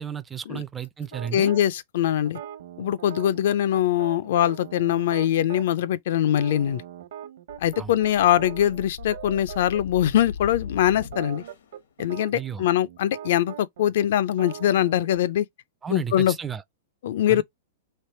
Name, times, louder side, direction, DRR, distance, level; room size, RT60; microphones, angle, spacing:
voice 1, 0.0-1.5 7.8-7.9 12.3-12.7 15.8-16.6 17.3-17.4, right 7 dB, 10° right, 0.3 m, -33 dB
sound 1, 1.1-1.6 2.2-5.7 6.3-9.8 10.1-10.3 10.6-15.2, right 10 dB, 65° right, 0.8 m, -41 dB
voice 2, 1.3-2.4 2.8-6.8 7.6-11.4 12.0-15.5 15.9-16.3 17.0-17.4, left 11 dB, 60° left, 0.4 m, -22 dB
sound 2, 7.5-11.8, left 7 dB, 80° left, 1.0 m, -40 dB
3.3 x 3.3 x 4.2 m
supercardioid pair, 165°, 0 cm